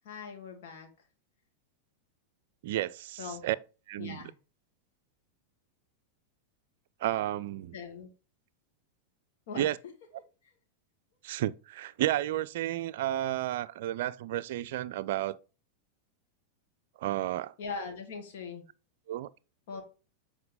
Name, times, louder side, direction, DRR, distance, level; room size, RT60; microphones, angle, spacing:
voice 1, 0.0-0.9 3.2-3.4 4.0-4.3 7.7-8.1 9.5-9.9 17.6-18.6 19.7-19.8, left 5 dB, 55° left, 2.3 m, -40 dB
voice 2, 2.6-3.6 3.9-4.2 7.0-7.7 9.5-9.8 11.2-15.4 17.0-17.5 19.1-19.3, right 13 dB, 55° right, 0.4 m, -32 dB
7.7 x 4.8 x 3.6 m
figure-of-eight pair, 90°, 0 cm